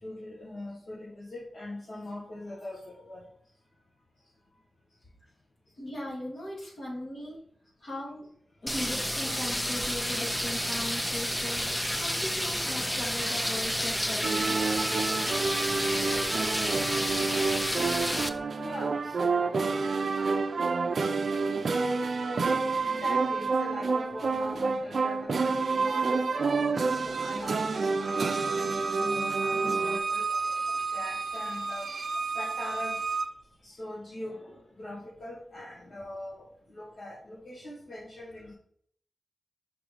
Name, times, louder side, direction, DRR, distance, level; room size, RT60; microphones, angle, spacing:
voice 1, 0.0-3.2 17.8-18.1 18.5-19.8 21.7-21.9 22.8-31.9 32.3-33.0 33.6-38.5, left 1 dB, 80° left, -8 dB, 2.0 m, -42 dB
voice 2, 5.8-7.4 7.8-8.3 8.6-11.6 12.0-14.6, left 1 dB, 60° left, -5 dB, 2.9 m, -38 dB
sound 1, 8.7-18.3, equal, 10° left, 0.5 m, -30 dB
sound 2, 14.2-30.0, right 4 dB, 75° right, 0.5 m, -29 dB
Bowed string instrument, 28.0-33.3, right 4 dB, 55° right, 0.8 m, -32 dB
5.9 x 3.7 x 5.0 m, 0.64 s
wide cardioid pair, 75°, 0 cm